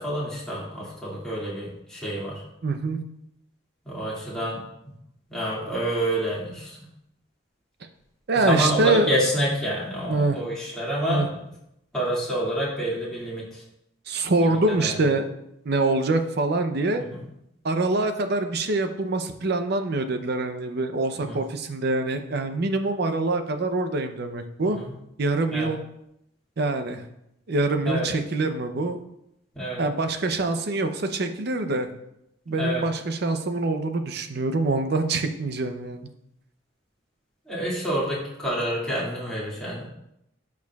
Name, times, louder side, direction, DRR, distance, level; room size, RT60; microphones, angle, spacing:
voice 1, 0.0-2.4 3.8-4.6 5.3-6.8 8.3-11.3 11.9-13.6 14.4-15.0 17.1-17.2 21.2-21.4 24.7-24.9 25.5-25.7 27.9-28.1 29.5-29.8 32.6-32.8 37.5-39.9, equal, 5° left, -7 dB, 2.2 m, -28 dB
voice 2, 2.6-3.0 8.3-9.1 10.1-10.4 11.1-11.3 14.1-15.2 15.6-17.0 17.6-24.8 25.2-25.8 26.6-27.0 27.5-29.0 29.8-31.9 32.5-36.1, right 2 dB, 55° right, 7 dB, 0.6 m, -25 dB
12.0 x 4.7 x 2.3 m, 0.81 s
head